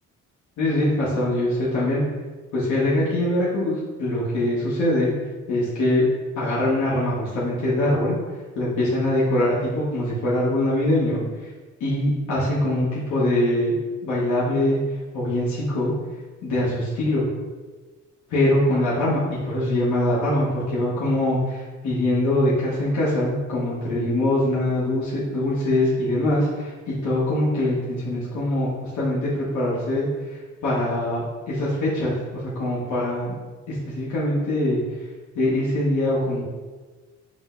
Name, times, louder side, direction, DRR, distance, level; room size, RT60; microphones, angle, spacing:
voice 1, 0.6-2.0 2.5-5.1 5.5-6.0 6.4-8.2 8.5-11.5 11.8-13.7 14.0-14.8 15.1-15.9 16.4-17.3 18.3-33.3 33.7-34.8 35.3-36.4, left 1 dB, 70° left, -9 dB, 1.3 m, -23 dB
5.2 x 2.1 x 3.7 m, 1.3 s
cardioid pair, 90°, 30 cm